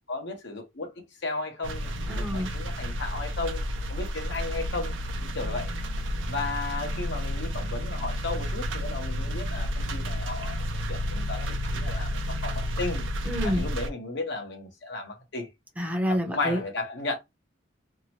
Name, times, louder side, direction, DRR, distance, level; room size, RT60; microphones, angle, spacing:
voice 1, 0.1-0.9 1.2-3.6 3.9-5.7 6.3-13.0 13.4-15.5 16.1-17.2, left 3 dB, 65° left, 0.9 m, -34 dB
sound 1, 1.6-13.9, equal, 80° right, 0.5 m, -31 dB
voice 2, 2.1-2.5 13.3-13.7 15.8-16.6, equal, 10° right, 0.6 m, -28 dB
2.8 x 2.1 x 2.8 m
head